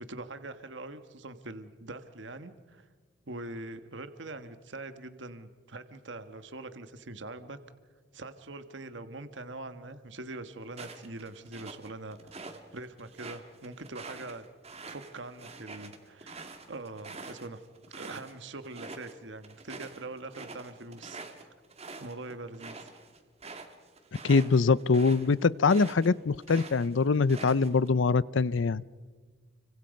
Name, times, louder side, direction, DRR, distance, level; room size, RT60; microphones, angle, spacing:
voice 1, 0.0-2.9 3.3-7.6 8.1-14.4 14.9-17.6 17.9-21.5 22.0-22.9, right 2 dB, 65° right, 10 dB, 1.4 m, -43 dB
sound 1, 10.7-12.6 13.0-18.3 18.6-19.1 19.4-26.1 26.4-27.9, right 3 dB, 35° right, 2.2 m, -45 dB
voice 2, 24.2-28.8, left 4 dB, 75° left, 20 dB, 0.6 m, -24 dB
29.5 x 24.5 x 5.3 m, 1.5 s
head